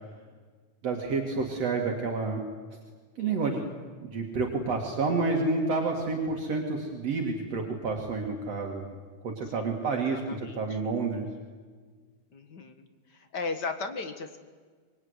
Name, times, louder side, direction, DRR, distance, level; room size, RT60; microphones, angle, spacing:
voice 1, 0.8-2.4 3.2-3.6 4.0-8.9 9.2-10.2 10.6-11.3, right 4 dB, 60° right, 1 dB, 3.1 m, -29 dB
voice 2, 3.2-3.7 9.6-10.8 12.3-14.4, left 4 dB, 40° left, 8 dB, 1.9 m, -38 dB
25.0 x 22.0 x 9.7 m, 1.5 s
omnidirectional pair, 3.4 m